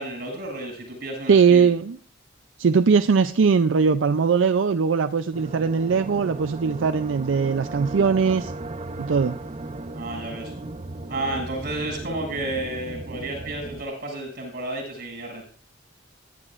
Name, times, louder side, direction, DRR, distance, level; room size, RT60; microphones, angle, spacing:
voice 1, 0.0-1.7 9.9-10.5 11.1-15.4, right 2 dB, 55° right, 0 dB, 7.3 m, -31 dB
voice 2, 1.3-2.0 2.6-8.5 9.0-9.3, right 5 dB, 90° right, 9 dB, 0.5 m, -20 dB
sound 1, 5.3-13.8, right 2 dB, 35° right, 0.7 m, -36 dB
18.5 x 11.5 x 2.5 m, 0.42 s
head